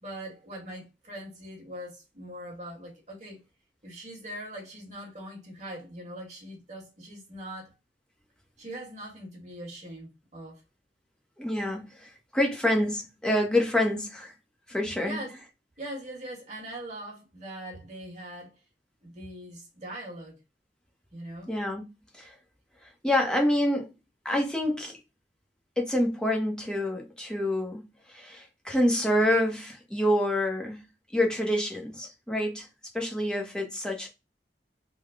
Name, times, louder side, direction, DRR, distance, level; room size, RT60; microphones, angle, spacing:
voice 1, 0.0-3.4 3.8-7.7 8.6-10.6 15.0-15.3 15.8-18.5 19.0-20.3 21.1-21.5, right 1 dB, 40° right, 1.7 m, -41 dB
voice 2, 11.4-14.3 14.7-15.2 21.5-21.9 22.1-22.3 22.8-23.9 24.2-24.9 25.8-30.8 31.1-32.7 32.9-34.1, left 1 dB, 5° left, 0.8 m, -27 dB
3.7 x 2.3 x 3.5 m
head